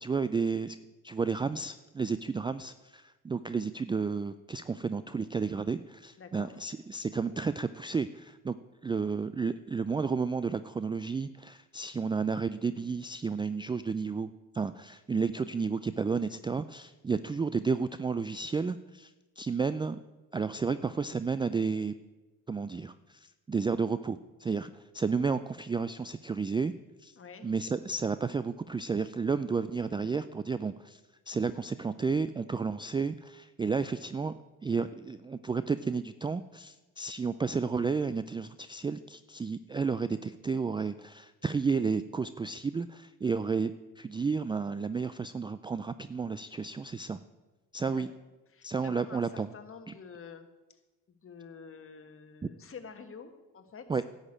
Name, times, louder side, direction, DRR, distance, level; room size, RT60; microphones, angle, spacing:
voice 1, 0.0-0.8 1.0-8.5 8.8-19.1 19.4-20.0 20.3-21.9 22.5-24.7 24.9-26.7 27.0-27.1 27.4-31.0 31.3-34.3 34.6-47.2 47.7-48.1 48.6-49.5 53.9-54.0, right 5 dB, 15° right, 13 dB, 0.3 m, -32 dB
voice 2, 6.2-6.6 27.2-27.5 47.9-48.1 48.5-50.8 51.1-53.9, left 5 dB, 35° left, 7 dB, 1.7 m, -48 dB
11.0 x 6.5 x 8.8 m, 1.2 s
supercardioid pair, 70°, 36 cm